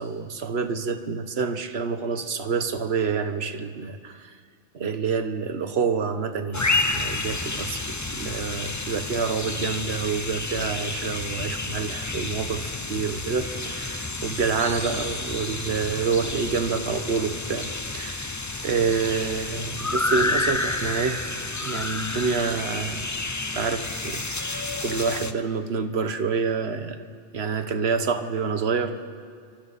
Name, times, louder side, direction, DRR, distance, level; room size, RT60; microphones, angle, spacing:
voice 1, 0.0-4.3 4.7-18.4 18.6-21.2 21.6-23.1 23.5-27.0 27.3-29.0, right 5 dB, 60° right, 9 dB, 1.3 m, -28 dB
sound 1, 6.5-25.3, left 2 dB, 20° left, 0.6 m, -30 dB
28.5 x 23.5 x 4.2 m, 2.1 s
omnidirectional pair, 1.3 m